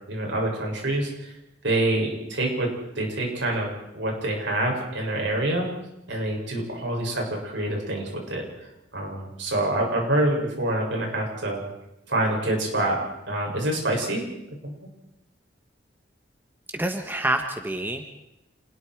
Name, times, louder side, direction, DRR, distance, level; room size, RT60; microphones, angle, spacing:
voice 1, 0.1-1.3 1.6-2.7 3.0-3.7 3.9-5.7 6.1-8.5 8.9-11.6 12.1-13.0 13.3-14.2 14.6-14.7, right 1 dB, 75° right, 0 dB, 7.3 m, -26 dB
voice 2, 16.7-18.1, right 1 dB, 10° right, 5 dB, 1.4 m, -27 dB
28.5 x 21.0 x 4.8 m, 0.87 s
head